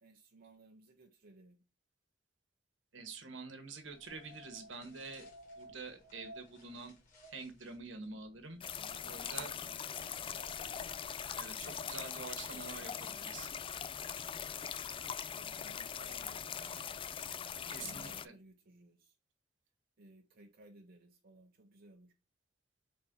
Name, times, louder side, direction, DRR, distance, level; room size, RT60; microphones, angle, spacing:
voice 1, 0.0-1.6 8.8-10.4 11.5-11.9 12.5-13.5 15.0-17.0 17.6-19.2 20.0-22.1, right 2 dB, 50° right, 0.7 m, -60 dB
voice 2, 2.9-5.3 5.6-6.9 7.3-8.6 9.0-9.5 11.4-13.5 17.7-18.3, right 4 dB, 70° right, 1.3 m, -47 dB
sound 1, 3.7-13.7, equal, 45° left, 1.9 m, -58 dB
sound 2, 8.6-18.3, left 8 dB, 25° left, 0.3 m, -42 dB
4.2 x 4.2 x 5.2 m
head